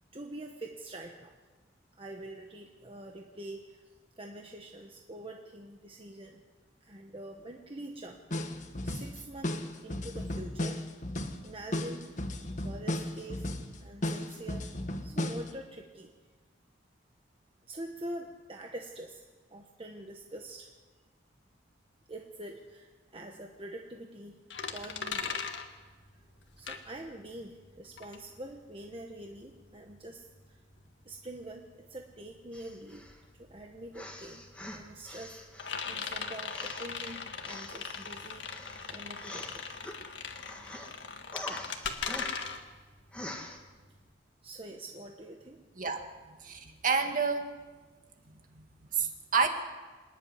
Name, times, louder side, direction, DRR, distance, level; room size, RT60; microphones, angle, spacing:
voice 1, 0.1-1.3 2.0-3.8 4.2-6.4 6.8-8.2 8.5-10.8 11.4-12.3 12.6-13.5 13.8-14.7 15.0-16.1 17.7-20.7 22.1-24.4 24.7-25.4 26.2-26.3 26.6-30.6 31.0-31.6 31.9-33.1 33.3-34.4 34.7-38.5 38.9-39.6 44.4-45.6, right 1 dB, 30° right, 2 dB, 1.4 m, -45 dB
sound 1, 8.3-15.5, left 1 dB, 40° left, 1.5 m, -35 dB
sound 2, 24.5-27.4 27.7-44.1, left 5 dB, 75° left, 1.8 m, -39 dB
sound 3, 32.5-33.2 33.9-35.9 36.4-40.0 40.3-40.9 41.3-42.6 43.1-43.6, left 1 dB, 5° left, 2.1 m, -45 dB
voice 2, 45.8-46.1 46.4-47.5 48.9-49.5, right 5 dB, 45° right, 5 dB, 2.0 m, -29 dB
26.0 x 11.0 x 9.7 m, 1.3 s
head